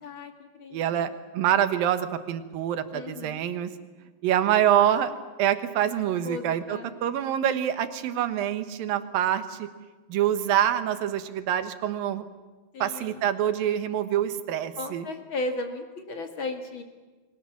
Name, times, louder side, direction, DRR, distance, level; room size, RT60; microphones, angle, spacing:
voice 1, 0.0-1.0 2.9-3.4 6.2-6.9 12.7-13.2 14.8-16.8, left 2 dB, 40° left, 6 dB, 2.4 m, -35 dB
voice 2, 0.7-3.7 4.2-5.1 5.4-9.7 10.1-12.2 12.8-15.1, right 10 dB, 85° right, 11 dB, 3.1 m, -26 dB
29.0 x 23.5 x 7.3 m, 1.3 s
omnidirectional pair, 3.9 m